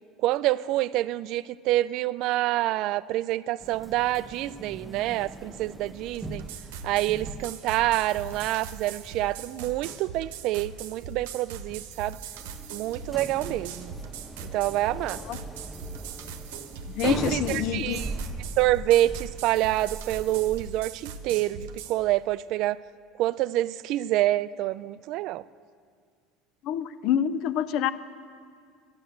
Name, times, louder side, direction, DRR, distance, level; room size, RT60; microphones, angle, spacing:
voice 1, 0.2-6.4 6.8-12.2 12.7-13.9 14.4-15.2 17.0-18.1 18.6-22.8 23.2-25.4, right 15 dB, 65° right, 18 dB, 0.3 m, -27 dB
sound 1, 3.6-20.6, right 2 dB, 5° right, 1.0 m, -41 dB
sound 2, 6.1-22.0, right 6 dB, 90° right, 0.9 m, -41 dB
voice 2, 16.9-18.0 26.6-27.9, left 9 dB, 60° left, 15 dB, 0.5 m, -27 dB
11.5 x 11.0 x 7.8 m, 2.1 s
supercardioid pair, 105°, 0 cm